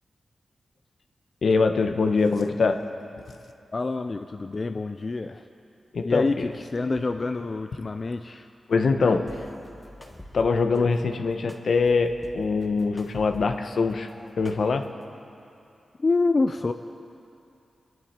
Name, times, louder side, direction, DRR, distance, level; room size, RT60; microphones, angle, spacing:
voice 1, 1.4-2.8 5.9-6.5 8.7-9.4 10.0-14.1 14.4-14.9, left 4 dB, 70° left, 6 dB, 0.9 m, -23 dB
voice 2, 3.7-5.4 6.0-8.5 16.0-16.7, left 3 dB, 35° left, 8 dB, 0.4 m, -27 dB
sound 1, 9.3-10.8 11.5-13.8 14.1-15.1, left 1 dB, 10° left, 1.4 m, -46 dB
25.0 x 11.0 x 4.4 m, 2.7 s
wide cardioid pair, 105°, 0 cm